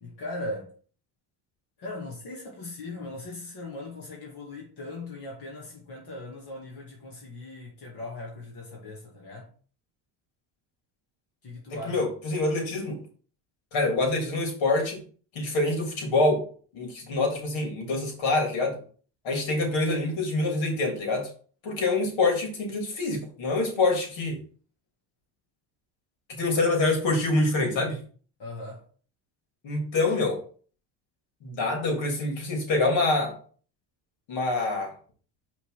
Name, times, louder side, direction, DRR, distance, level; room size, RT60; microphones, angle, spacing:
voice 1, 0.0-0.7 1.8-9.5 11.4-12.0 28.4-28.8, left 2 dB, 55° left, 2.4 m, -39 dB
voice 2, 11.9-13.0 13.7-15.0 15.3-16.4 16.7-18.8 19.2-21.3 21.6-24.4 26.4-28.0 29.6-30.4 31.4-33.4 34.3-34.9, left 2 dB, 70° left, 3.3 m, -26 dB
5.8 x 4.3 x 5.8 m
cardioid pair, 95°, 47 cm